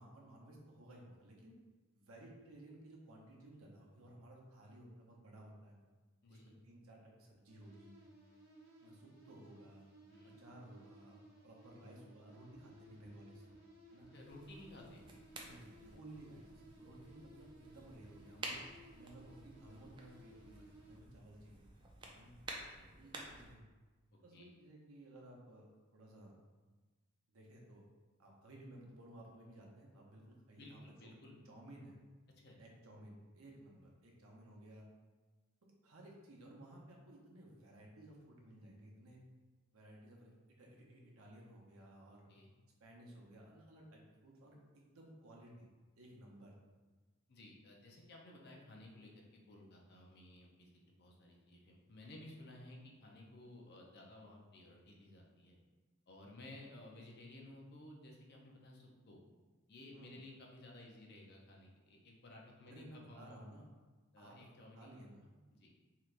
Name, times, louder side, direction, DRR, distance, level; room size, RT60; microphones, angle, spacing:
voice 1, 0.0-1.6 1.9-5.8 6.3-7.9 8.8-9.9 10.2-13.4 13.9-14.1 14.7-14.8 15.4-16.5 16.8-21.7 22.1-22.3 23.0-23.7 24.2-26.4 27.3-27.8 28.2-31.1 31.4-32.0 32.6-34.9 35.6-39.2 39.7-40.3 40.6-42.3 42.8-45.7 46.0-46.5 59.9-60.2 62.6-63.6 64.2-64.4 64.7-65.2, right 1 dB, 75° right, -1 dB, 0.7 m, -57 dB
voice 2, 6.2-6.6 10.1-10.4 14.1-15.0 22.7-22.9 24.3-24.5 30.6-31.4 32.4-32.6 42.3-42.5 47.3-55.6 56.1-59.2 59.7-63.4 64.1-64.9 65.6-65.7, left 1 dB, 50° left, -1 dB, 0.5 m, -56 dB
sound 1, 7.5-21.0, right 1 dB, 55° right, 0.9 m, -60 dB
sound 2, 14.2-23.5, right 2 dB, 20° right, 0.3 m, -52 dB
3.2 x 2.8 x 2.4 m, 1.3 s
head